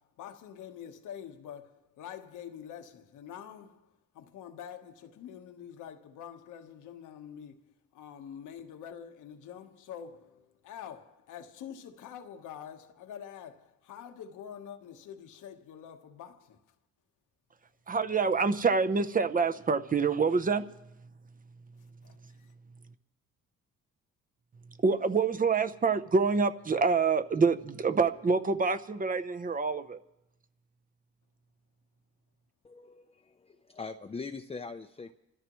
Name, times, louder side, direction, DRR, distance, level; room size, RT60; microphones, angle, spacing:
voice 1, 0.0-3.9 4.1-7.7 7.9-16.6 22.0-22.5, left 9 dB, 85° left, 1.3 m, -46 dB
voice 2, 17.9-20.7 24.8-30.0, right 4 dB, 30° right, 0.7 m, -26 dB
voice 3, 32.6-35.1, left 4 dB, 20° left, 0.6 m, -42 dB
26.0 x 13.5 x 3.1 m
cardioid pair, 90°, 30 cm